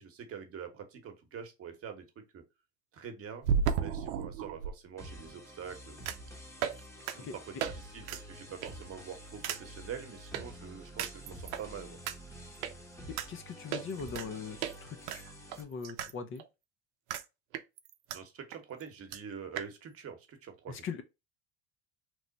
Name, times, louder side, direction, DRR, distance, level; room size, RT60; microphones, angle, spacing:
voice 1, 0.0-2.4 2.9-3.5 3.8-6.1 7.1-12.0 18.1-20.9, right 7 dB, 45° right, 1.0 m, -45 dB
sound 1, 1.0-1.1 3.4-4.7 6.1-6.3 6.6-6.8 7.1-7.2 7.6-7.7 8.0-8.2 8.6-8.9 9.4-9.6 10.3-10.4 11.0-11.6 12.1-12.2 12.6-12.7 13.2-13.3 13.7-14.3 14.6-14.7 15.1-16.1 16.4-16.5 17.1-17.2 17.5-18.2 18.5-18.6 18.8-18.9 19.1-19.2 19.6-19.7, right 7 dB, 85° right, 0.6 m, -33 dB
sound 2, 5.0-15.6, equal, 10° left, 0.9 m, -49 dB
voice 2, 13.3-15.2 15.6-16.4 20.7-21.0, left 5 dB, 40° left, 0.5 m, -41 dB
3.1 x 2.1 x 3.8 m
supercardioid pair, 95°, 34 cm